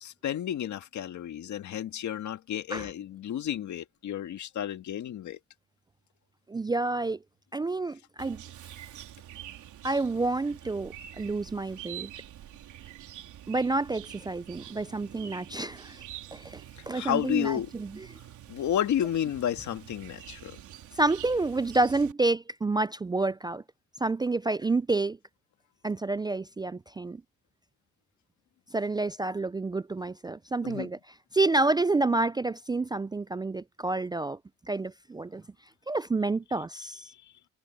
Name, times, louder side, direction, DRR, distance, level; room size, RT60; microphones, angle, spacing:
voice 1, 0.0-5.4 16.9-17.7 18.5-20.6 30.6-30.9, left 10 dB, 70° left, 2.0 m, -31 dB
voice 2, 6.5-7.2 7.5-8.4 9.8-12.1 13.5-16.0 16.3-18.1 21.0-23.6 24.0-25.2 25.8-27.2 28.7-31.0 31.3-34.4 34.7-35.4 35.9-37.1, right 3 dB, 15° right, 0.3 m, -29 dB
Chirp tweet, 8.2-22.1, right 12 dB, 80° right, 4.0 m, -46 dB
cardioid pair, 90°, 30 cm